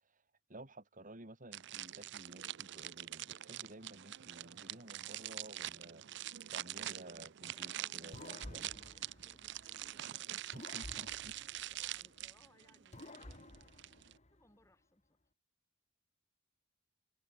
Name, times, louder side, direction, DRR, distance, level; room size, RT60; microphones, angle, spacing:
voice 1, 0.5-6.0 6.5-8.7 10.3-11.3, right 1 dB, 40° right, 3.6 m, -54 dB
sound 1, 1.5-14.2, right 13 dB, 60° right, 0.6 m, -45 dB
voice 2, 7.5-10.3 10.6-11.4 11.7-13.5 14.3-15.2, left 1 dB, 15° left, 4.9 m, -67 dB
sound 2, 8.1-10.0 10.5-12.4 12.9-14.6, left 1 dB, 35° left, 2.4 m, -53 dB
head